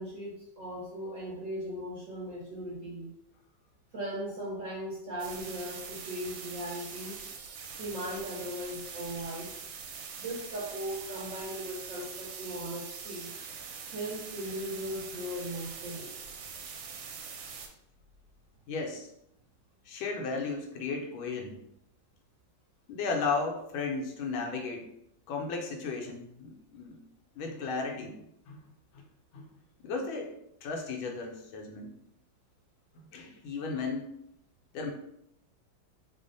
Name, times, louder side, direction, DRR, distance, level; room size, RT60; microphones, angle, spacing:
voice 1, 0.0-3.1 3.9-7.2 7.8-9.5 10.2-13.3 13.9-16.1, equal, 55° right, -5 dB, 1.0 m, -38 dB
sound 1, 5.2-17.7, right 6 dB, 75° right, 1.2 m, -43 dB
voice 2, 18.7-19.1 19.9-21.6 22.9-24.9 25.3-27.0 27.3-28.6 28.9-29.0 29.3-29.5 29.8-30.3 30.6-31.9 33.1-34.1 34.7-34.9, left 4 dB, 85° left, 1 dB, 1.5 m, -35 dB
3.4 x 2.1 x 3.9 m, 0.76 s
omnidirectional pair, 2.2 m